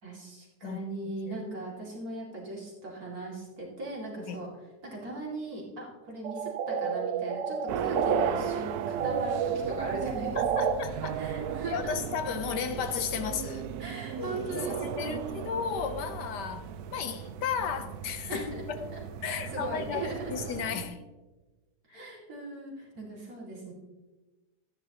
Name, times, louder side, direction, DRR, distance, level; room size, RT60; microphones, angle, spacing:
voice 1, 0.0-4.5 4.8-10.7 11.1-11.9 13.8-15.3 18.3-18.6 18.9-20.5 21.8-23.7, right 2 dB, 55° right, 3.1 m, -39 dB
sound 1, 6.2-8.3 8.7-10.7, right 7 dB, 90° right, 1.5 m, -30 dB
sound 2, 7.7-20.9, right 8 dB, 70° right, 1.0 m, -37 dB
voice 2, 10.3-11.2 11.7-13.7 14.2-18.9 19.2-21.0 21.9-22.0, left 7 dB, 75° left, 1.4 m, -34 dB
13.5 x 9.8 x 3.0 m
omnidirectional pair, 1.9 m